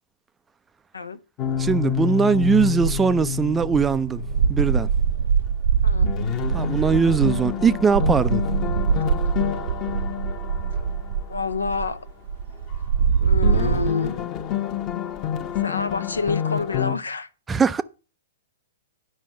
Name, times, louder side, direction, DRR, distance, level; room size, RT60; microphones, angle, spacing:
sound 1, 1.4-5.2 5.5-5.6 6.0-11.9 13.4-16.9, left 10 dB, 30° left, 1.1 m, -28 dB
sound 2, 1.5-2.0 2.3-13.9, right 6 dB, 60° right, 0.6 m, -24 dB
voice 1, 1.6-4.2 4.5-4.9 6.5-8.4 17.5-17.8, right 5 dB, 15° right, 0.4 m, -20 dB
voice 2, 5.8-6.1 11.3-12.1 13.2-14.2 15.5-17.3, left 4 dB, 80° left, 0.8 m, -28 dB
10.0 x 5.4 x 6.3 m
figure-of-eight pair, 110°, 0 cm